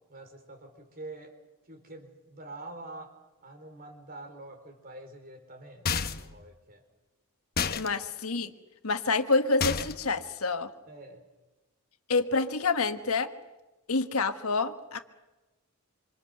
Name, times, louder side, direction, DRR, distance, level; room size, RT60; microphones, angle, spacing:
voice 1, 0.0-1.4 1.6-6.8 10.8-11.2, right 2 dB, 40° right, 6 dB, 4.1 m, -46 dB
sound 1, 5.9-6.4 7.6-7.9 9.6-10.1, left 6 dB, 45° left, 1.1 m, -29 dB
voice 2, 7.7-8.5 8.8-10.7 12.1-13.3 13.9-15.0, left 3 dB, 75° left, 8 dB, 1.5 m, -27 dB
26.5 x 26.0 x 6.7 m, 1.1 s
head